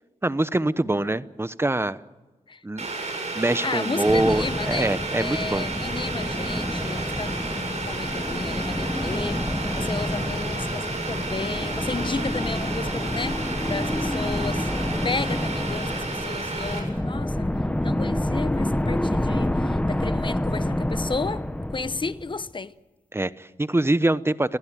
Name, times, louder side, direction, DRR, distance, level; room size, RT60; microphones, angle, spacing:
voice 1, 0.2-2.0 2.6-2.9 3.3-5.7 23.1-24.6, right 2 dB, 15° right, 0.9 m, -24 dB
Boiling, 2.8-16.8, right 3 dB, 50° right, 7.2 m, -32 dB
voice 2, 3.6-14.7 15.0-17.5 17.8-21.5 21.7-22.7, left 4 dB, 35° left, 0.9 m, -33 dB
sound 1, 4.1-22.5, left 1 dB, 10° left, 1.1 m, -28 dB
22.0 x 15.5 x 9.0 m
cardioid pair, 65°, 14 cm